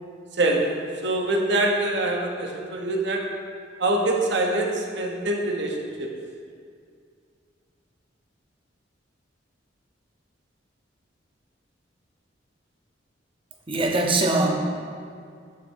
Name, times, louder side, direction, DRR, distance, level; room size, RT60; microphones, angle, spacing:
voice 1, 0.3-3.3 3.8-6.1, right 2 dB, 65° right, 1 dB, 1.0 m, -24 dB
voice 2, 13.7-14.5, right 2 dB, 30° right, 2 dB, 0.8 m, -21 dB
7.6 x 4.1 x 6.4 m, 2.2 s
head